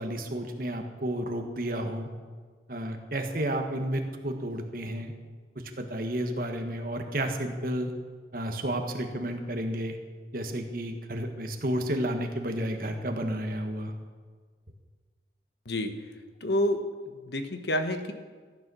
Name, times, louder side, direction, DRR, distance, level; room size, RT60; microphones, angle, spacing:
voice 1, 0.0-2.1 2.7-5.1 5.8-7.9 8.3-10.0 10.3-13.9, right 1 dB, 55° right, 4 dB, 1.5 m, -31 dB
voice 2, 16.4-18.1, left 1 dB, 75° left, 7 dB, 1.3 m, -29 dB
14.5 x 9.6 x 6.3 m, 1.5 s
head